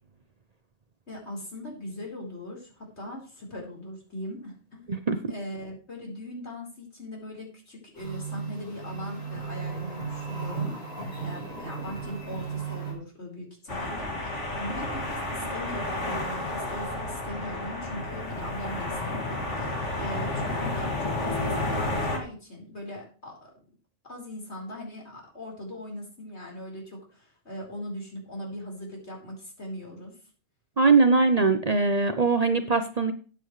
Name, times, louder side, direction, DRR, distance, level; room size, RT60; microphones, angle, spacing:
voice 1, 1.1-4.9 5.3-10.8 11.2-23.5 24.0-30.2, left 1 dB, 70° left, -1 dB, 4.7 m, -40 dB
voice 2, 4.9-5.3 30.8-33.1, right 4 dB, 40° right, 8 dB, 0.9 m, -21 dB
sound 1, 8.0-12.9, right 5 dB, 50° left, 4.3 m, -35 dB
sound 2, 13.7-22.2, left 2 dB, 90° left, 2.9 m, -31 dB
13.5 x 9.3 x 3.2 m, 0.38 s
omnidirectional pair, 1.2 m